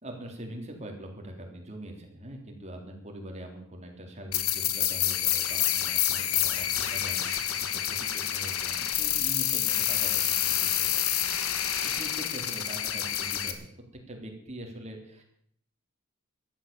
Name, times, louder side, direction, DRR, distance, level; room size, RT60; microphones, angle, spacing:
voice 1, 0.0-11.3 11.8-13.7 14.1-15.2, right 1 dB, 30° right, 2 dB, 3.6 m, -43 dB
sound 1, 4.3-13.5, left 11 dB, 75° left, 1.6 m, -28 dB
14.5 x 12.5 x 7.1 m, 0.66 s
head